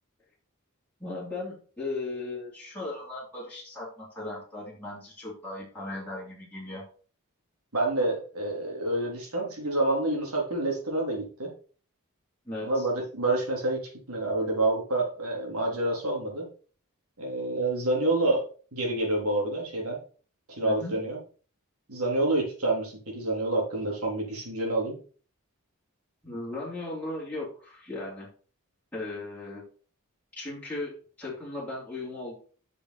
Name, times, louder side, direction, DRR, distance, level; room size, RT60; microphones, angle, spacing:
voice 1, 1.0-6.8 12.4-12.9 20.6-21.0 26.2-28.3 28.9-29.6 30.3-32.4, left 2 dB, 5° left, -8 dB, 3.3 m, -37 dB
voice 2, 7.7-11.5 12.6-16.5 17.2-18.4 18.7-20.0 20.5-21.2 21.9-25.0, right 2 dB, 85° right, -1 dB, 3.8 m, -28 dB
8.1 x 6.8 x 4.2 m, 0.41 s
head